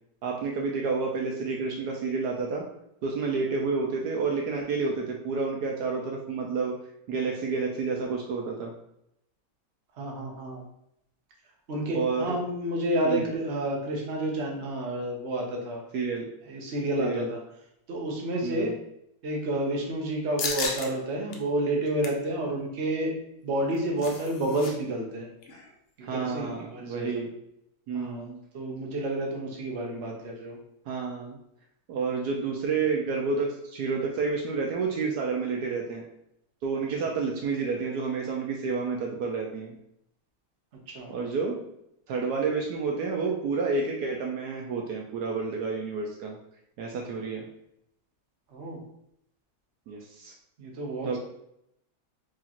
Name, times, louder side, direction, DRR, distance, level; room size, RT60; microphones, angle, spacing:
voice 1, 0.2-2.6 3.0-6.7 7.1-8.7 11.9-12.3 13.0-13.3 15.9-16.2 17.0-17.3 18.4-18.7 26.0-27.3 27.9-28.4 30.9-31.4 31.9-36.0 36.6-39.7 41.1-41.6 42.1-46.4 46.8-47.4 49.9-50.3 51.0-51.2, right 4 dB, 75° right, 0 dB, 1.1 m, -30 dB
voice 2, 10.0-10.6 11.7-15.8 16.5-17.4 17.9-18.7 19.2-23.1 23.4-25.3 26.0-27.1 27.9-28.3 28.5-30.6 40.9-41.1 48.5-48.8 50.6-51.2, right 1 dB, 50° right, -1 dB, 1.0 m, -30 dB
sound 1, 20.4-20.9 21.3-21.4 21.8-22.2 23.5-24.7 25.0-25.1 25.4-25.7, left 4 dB, 85° left, 0.5 m, -34 dB
4.7 x 2.9 x 2.9 m, 0.78 s
omnidirectional pair, 1.8 m